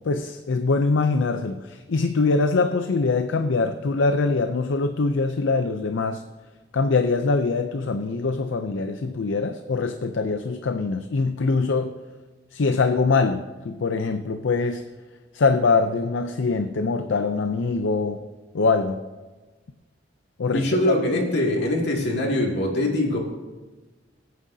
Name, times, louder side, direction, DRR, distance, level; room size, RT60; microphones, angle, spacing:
voice 1, 0.1-6.2 6.7-11.9 12.5-14.8 15.3-18.2 18.5-19.0 20.4-20.9, left 4 dB, 80° left, 8 dB, 0.5 m, -23 dB
voice 2, 20.5-23.2, left 1 dB, 65° left, -1 dB, 2.3 m, -23 dB
23.0 x 9.2 x 2.7 m, 1.3 s
head